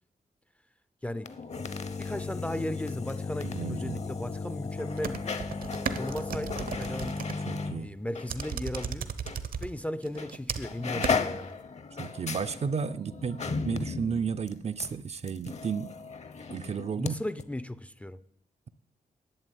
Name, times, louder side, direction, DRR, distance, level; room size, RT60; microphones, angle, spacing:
sound 1, 1.1-8.9 9.3-9.4 10.2-10.4 10.6-17.1 17.4-17.5, left 4 dB, 45° left, 0.8 m, -35 dB
voice 1, 2.0-5.4 5.9-7.2 7.7-9.1 9.6-11.6 17.0-18.2, left 1 dB, 10° left, 0.5 m, -36 dB
voice 2, 3.4-4.0 7.5-8.0 10.8-11.1 12.0-15.9 16.5-17.1, right 6 dB, 45° right, 0.5 m, -33 dB
sound 2, 5.0-7.4 8.3-9.7 10.0-10.7 11.0-11.2, right 6 dB, 65° right, 0.9 m, -35 dB
11.0 x 8.4 x 9.1 m
wide cardioid pair, 150°, 16 cm